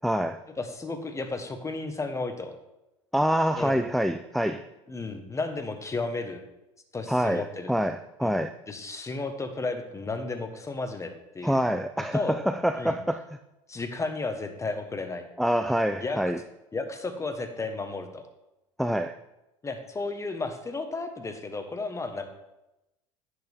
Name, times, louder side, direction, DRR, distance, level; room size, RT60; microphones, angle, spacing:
voice 1, 0.0-0.4 3.1-4.6 7.1-8.6 11.4-12.2 12.5-13.2 15.4-16.4 18.8-19.2, equal, ahead, 0.4 m, -26 dB
voice 2, 0.6-2.5 3.6-3.8 4.5-4.6 4.9-6.4 6.9-7.7 8.2-8.4 8.7-11.6 12.1-12.4 12.8-13.0 13.7-15.3 16.0-16.2 16.7-18.3 19.6-22.3, left 3 dB, 20° left, 1.4 m, -33 dB
10.5 x 8.0 x 3.6 m
hypercardioid pair, 90°, 16 cm